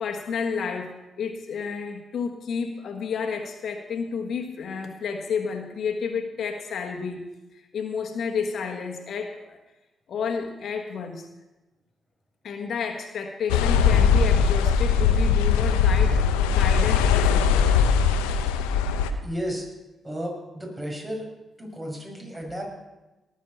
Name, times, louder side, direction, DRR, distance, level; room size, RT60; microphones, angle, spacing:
voice 1, 0.0-7.2 7.5-9.6 10.1-11.3 12.4-17.7, left 6 dB, 65° left, 4 dB, 1.4 m, -31 dB
sound 1, 13.5-19.1, left 6 dB, 85° left, 0.7 m, -20 dB
voice 2, 19.2-19.7 20.0-21.3 21.6-22.6, equal, 20° right, 0 dB, 6.0 m, -33 dB
19.0 x 6.5 x 7.0 m, 1.1 s
hypercardioid pair, 45°, 0 cm